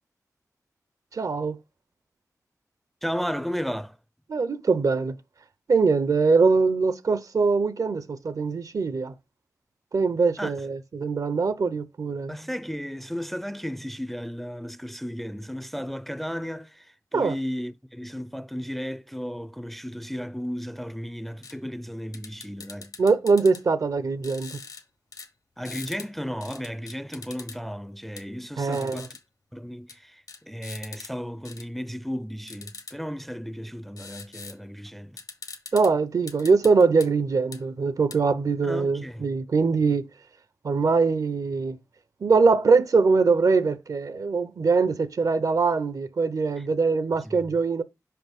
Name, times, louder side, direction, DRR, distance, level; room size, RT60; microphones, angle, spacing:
voice 1, 1.1-1.6 4.3-5.2 5.7-9.1 9.9-12.4 17.1-17.4 23.0-24.6 28.6-29.1 35.7-40.1 40.6-41.8 42.2-47.8, right 4 dB, 65° right, 0.6 m, -22 dB
voice 2, 3.0-4.0 10.4-10.5 12.3-22.9 25.6-29.1 29.5-35.2 38.6-39.2 47.2-47.3, equal, 5° left, 0.4 m, -34 dB
sound 1, 21.4-21.5 22.1-23.6 24.2-24.8 25.1-25.3 25.6-26.1 26.4-27.6 28.2-28.3 28.7-29.2 29.9-30.0 30.3-31.1 31.4-31.6 32.5-32.9 34.0-34.6 34.9-35.0 35.2-35.9 36.3-37.1 37.5-37.6 38.1-38.2, left 5 dB, 75° left, 0.9 m, -42 dB
5.8 x 5.2 x 3.6 m
wide cardioid pair, 70°, 6 cm